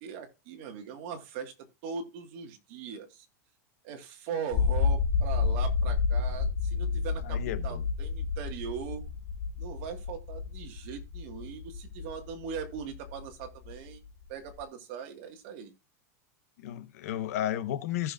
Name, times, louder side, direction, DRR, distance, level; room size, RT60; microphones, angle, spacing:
voice 1, 0.0-1.5 1.8-3.3 3.8-9.1 9.6-14.0 14.3-15.7, right 7 dB, 45° right, 1.9 m, -40 dB
sound 1, 4.5-14.6, left 5 dB, 40° left, 1.6 m, -30 dB
voice 2, 7.2-7.8 16.6-18.1, left 11 dB, 70° left, 1.0 m, -33 dB
15.5 x 6.2 x 2.5 m
supercardioid pair, 170°, 9 cm